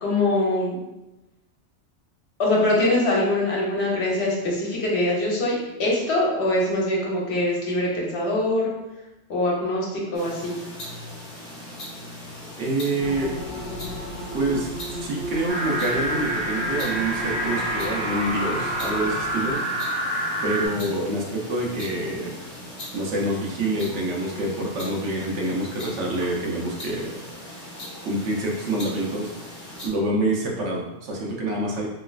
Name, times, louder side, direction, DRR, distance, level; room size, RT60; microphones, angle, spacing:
voice 1, 0.0-0.8 2.4-8.7 9.3-10.6, left 1 dB, 70° left, -4 dB, 1.1 m, -23 dB
sound 1, 10.1-29.9, left 1 dB, 45° left, 1.0 m, -39 dB
voice 2, 12.6-13.3 14.3-19.6 20.4-22.4 22.9-27.2 28.0-29.3 29.8-31.9, right 1 dB, 80° right, -1 dB, 1.0 m, -27 dB
sound 2, 13.0-19.5, equal, ahead, 0.9 m, -36 dB
sound 3, 15.5-20.7, right 1 dB, 55° right, 0.9 m, -27 dB
3.1 x 3.0 x 2.3 m, 1.0 s
omnidirectional pair, 1.2 m